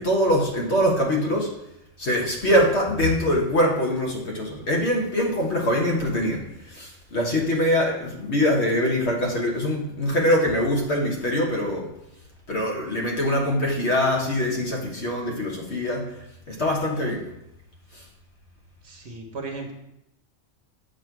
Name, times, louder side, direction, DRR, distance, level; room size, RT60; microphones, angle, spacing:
voice 1, 0.0-1.5 2.0-11.9 12.5-16.2 16.5-17.3 17.9-18.0, equal, 60° left, -1 dB, 1.6 m, -23 dB
voice 2, 18.8-19.7, right 3 dB, 60° right, 3 dB, 1.3 m, -35 dB
7.7 x 3.2 x 6.0 m, 0.83 s
omnidirectional pair, 1.3 m